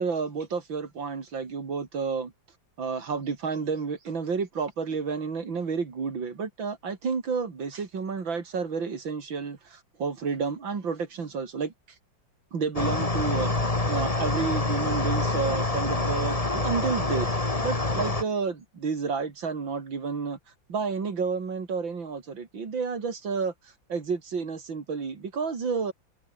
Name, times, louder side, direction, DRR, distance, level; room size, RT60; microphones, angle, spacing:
voice 1, 0.0-2.3 2.8-11.7 12.5-17.3 17.6-20.4 20.7-23.5 23.9-25.9, right 5 dB, 85° right, 3.6 m, -30 dB
sound 1, 12.8-18.2, left 2 dB, 20° left, 2.3 m, -26 dB
omnidirectional pair, 2.0 m